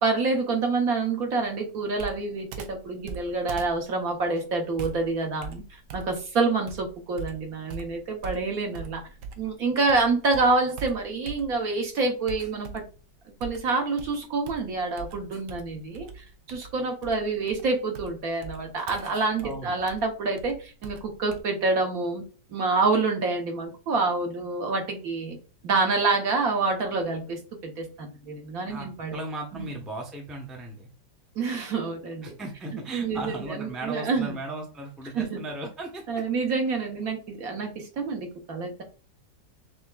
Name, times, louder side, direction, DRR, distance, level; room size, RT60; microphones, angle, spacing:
voice 1, 0.0-9.0 9.4-12.8 13.4-22.2 22.5-25.4 25.6-29.2 29.5-29.7 31.3-32.3 32.7-34.4 35.1-35.4 36.1-38.8, right 3 dB, 60° right, 2 dB, 1.3 m, -27 dB
Computer keyboard, 2.0-9.6 9.9-11.8 12.3-13.0 13.4-21.4, right 5 dB, 80° right, 1.3 m, -42 dB
voice 2, 19.4-19.7 28.7-28.9 29.1-30.9 32.2-36.0, right 2 dB, ahead, 0 dB, 0.5 m, -36 dB
5.8 x 2.8 x 2.3 m, 0.36 s
omnidirectional pair, 1.8 m